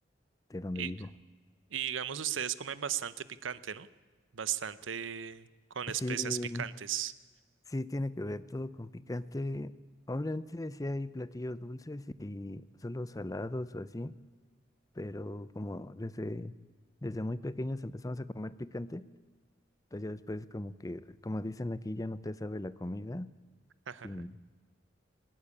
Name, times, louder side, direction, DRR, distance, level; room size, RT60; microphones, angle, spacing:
voice 1, 0.5-1.1 6.0-6.6 7.7-9.7 10.1-14.1 15.0-16.5 17.0-19.1 19.9-23.3 24.0-24.5, left 1 dB, 20° left, 16 dB, 0.6 m, -37 dB
voice 2, 1.7-3.9 4.3-7.1 23.9-24.1, right 9 dB, 80° right, 16 dB, 0.8 m, -36 dB
20.5 x 17.5 x 8.4 m, 1.4 s
head